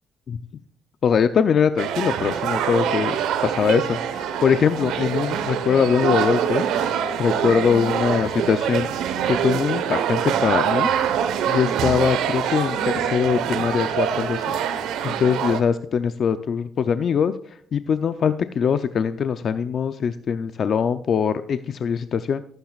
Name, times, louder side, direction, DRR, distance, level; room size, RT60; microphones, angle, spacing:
voice 1, 1.0-3.2 3.4-6.6 7.2-8.9 9.2-10.9 11.5-14.4 15.0-17.3 17.7-22.4, left 7 dB, 55° left, 11 dB, 0.5 m, -22 dB
sound 1, 1.8-15.6, right 8 dB, 90° right, 1.1 m, -24 dB
17.5 x 9.0 x 2.4 m, 0.62 s
cardioid pair, 90°, 0 cm